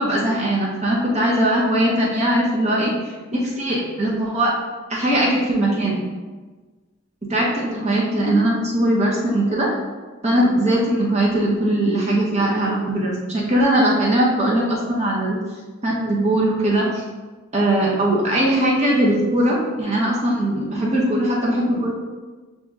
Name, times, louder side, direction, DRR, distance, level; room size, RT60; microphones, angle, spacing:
voice 1, 0.0-2.9 3.3-4.5 4.9-6.0 7.3-9.7 10.2-15.4 15.8-17.0 17.5-21.9, right 1 dB, 35° right, -4 dB, 0.8 m, -20 dB
7.6 x 2.8 x 2.4 m, 1.3 s
head